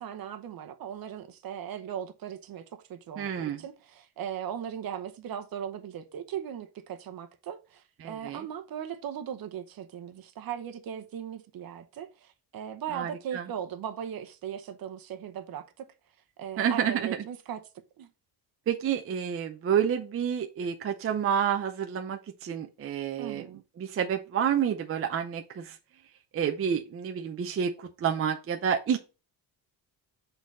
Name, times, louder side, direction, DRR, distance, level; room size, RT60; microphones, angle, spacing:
voice 1, 0.0-15.8 16.4-17.6 18.0-18.1 23.2-23.6, right 9 dB, 55° right, 0.9 m, -38 dB
voice 2, 3.2-3.6 8.0-8.5 12.9-13.4 16.6-17.2 18.7-23.5 23.8-25.8 26.3-29.0, right 8 dB, 35° right, 0.6 m, -29 dB
7.3 x 4.0 x 4.1 m
cardioid pair, 165°, 42 cm